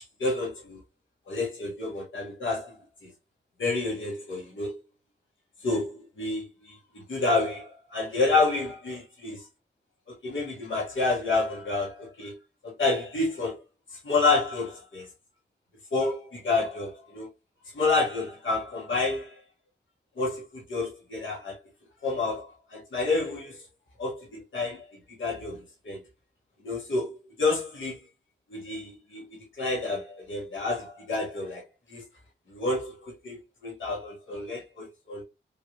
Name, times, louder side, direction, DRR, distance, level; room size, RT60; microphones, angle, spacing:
voice 1, 0.2-0.8 1.3-2.8 3.0-3.1 3.6-4.7 5.6-9.4 10.1-12.3 12.6-13.6 13.9-15.1 15.9-17.3 17.7-19.4 20.2-21.6 22.0-23.6 24.0-24.8 25.2-25.6 25.8-26.0 26.6-28.0 28.5-31.6 31.9-32.0 32.5-35.2, left 3 dB, 75° left, 1.5 m, -29 dB
3.5 x 2.6 x 3.0 m
cardioid pair, 40°, 20 cm